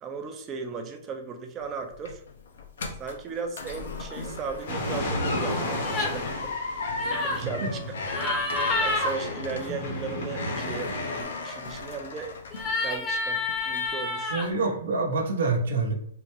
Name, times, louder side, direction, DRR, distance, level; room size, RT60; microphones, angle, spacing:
voice 1, 0.0-2.2 3.0-6.6 6.9-8.0 8.4-12.3 12.8-14.3, right 5 dB, 20° right, 5 dB, 0.5 m, -37 dB
sound 1, 1.6-13.2 13.5-14.0 14.4-14.5, left 3 dB, 75° left, 0.5 m, -36 dB
sound 2, 4.7-11.2, left 1 dB, 60° left, 0.9 m, -33 dB
sound 3, 5.8-6.2 7.0-7.4 8.1-9.1 12.5-14.5, left 2 dB, 20° left, 0.7 m, -28 dB
voice 2, 14.3-15.9, right 3 dB, 75° right, 2 dB, 0.7 m, -26 dB
3.7 x 2.1 x 3.0 m, 0.71 s
hypercardioid pair, 150°, 0 cm